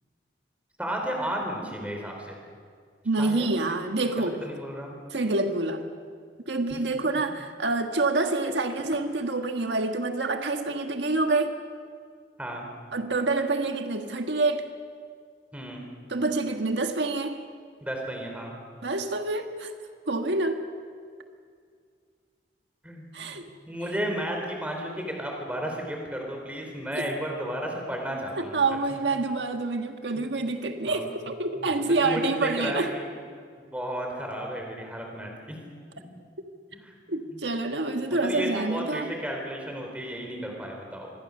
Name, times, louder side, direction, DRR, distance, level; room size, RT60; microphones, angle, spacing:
voice 1, 0.8-2.4 3.2-3.5 4.2-5.0 7.1-7.2 12.4-12.6 15.5-15.8 17.8-18.6 22.8-28.6 30.2-30.3 30.9-31.1 31.6-33.1 33.7-35.6 36.0-36.1 37.3-37.4 38.1-41.1, equal, 10° right, 1 dB, 4.3 m, -33 dB
voice 2, 3.0-4.4 5.1-5.9 6.5-11.5 12.9-14.7 16.1-17.4 18.8-19.7 20.1-20.6 23.1-23.4 28.4-32.9 37.1-39.1, right 3 dB, 90° right, 6 dB, 1.6 m, -27 dB
27.0 x 21.5 x 6.7 m, 2.1 s
head